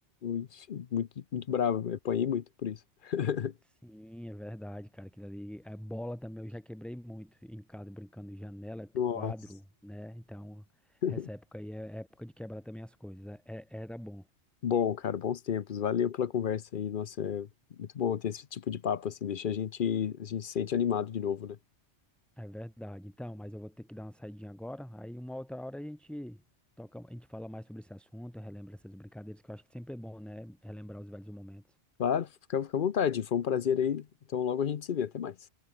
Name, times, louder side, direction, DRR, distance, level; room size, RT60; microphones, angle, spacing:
voice 1, 0.2-2.8 3.0-3.5 9.0-9.3 11.0-11.3 14.6-17.5 17.8-21.6 32.0-35.4, left 8 dB, 55° left, 0.8 m, -31 dB
voice 2, 3.8-14.3 22.4-26.4 26.8-31.6, equal, ahead, 1.3 m, -43 dB
omnidirectional pair, 1.2 m